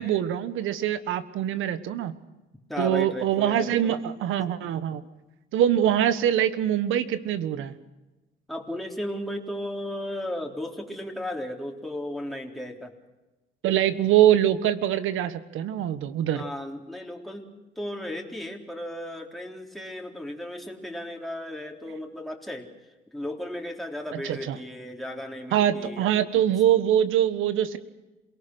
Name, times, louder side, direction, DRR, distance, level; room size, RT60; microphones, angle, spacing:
voice 1, 0.0-2.1 2.8-5.0 5.5-7.7 13.6-16.4 24.1-24.6 25.5-27.8, right 11 dB, 90° right, 13 dB, 1.4 m, -24 dB
voice 2, 2.7-3.9 8.5-12.9 16.3-17.5 17.8-22.7 23.1-26.1, left 1 dB, ahead, 1 dB, 3.9 m, -35 dB
28.0 x 18.5 x 6.4 m, 1.1 s
cardioid pair, 90°, 20 cm